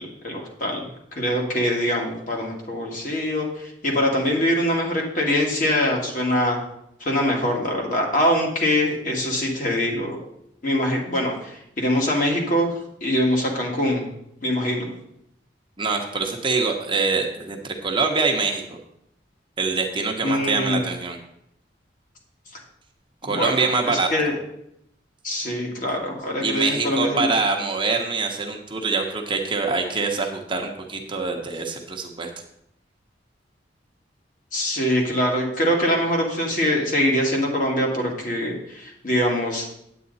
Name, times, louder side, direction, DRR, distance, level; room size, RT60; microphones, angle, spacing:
voice 1, 0.0-6.6 7.0-10.2 10.6-14.1 14.4-14.9 20.2-20.9 23.2-24.4 25.2-27.3 34.5-39.7, left 1 dB, 45° left, -1 dB, 2.2 m, -23 dB
voice 2, 15.8-18.8 19.6-21.2 23.2-24.3 26.4-32.3, right 4 dB, 30° right, 2 dB, 1.1 m, -24 dB
9.2 x 8.8 x 4.1 m, 0.77 s
head